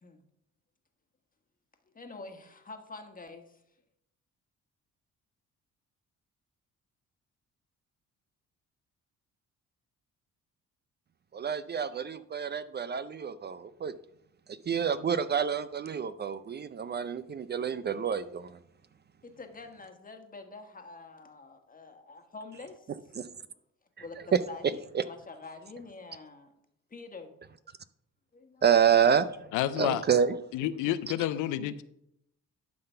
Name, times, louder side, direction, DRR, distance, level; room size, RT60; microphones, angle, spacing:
voice 1, 1.9-3.6 19.2-23.0 24.0-26.6 26.9-27.3 28.3-28.7, left 3 dB, 30° left, 5 dB, 1.4 m, -46 dB
voice 2, 11.3-13.9 14.5-18.6 23.2-23.3 24.3-24.4 24.9-25.0 28.6-29.5 29.8-30.4, right 7 dB, 35° right, 14 dB, 0.4 m, -28 dB
voice 3, 29.5-30.0 30.5-31.8, left 12 dB, 90° left, 13 dB, 0.5 m, -29 dB
11.5 x 3.9 x 5.6 m, 0.78 s
cardioid pair, 90°, 30 cm